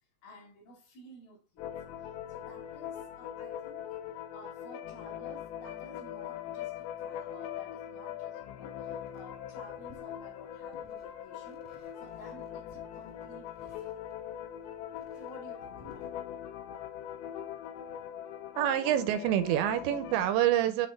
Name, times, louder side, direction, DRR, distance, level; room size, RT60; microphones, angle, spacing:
voice 1, 0.2-1.7 2.3-4.0 4.3-14.0 15.2-16.3 17.9-18.2, left 1 dB, 60° left, 4.2 m, -53 dB
sound 1, 1.6-20.3, left 10 dB, 80° left, 2.2 m, -41 dB
sound 2, 8.9-16.1, left 2 dB, 60° right, 0.3 m, -60 dB
voice 2, 18.6-20.9, right 11 dB, 85° right, 2.9 m, -27 dB
9.4 x 4.4 x 3.5 m
omnidirectional pair, 5.2 m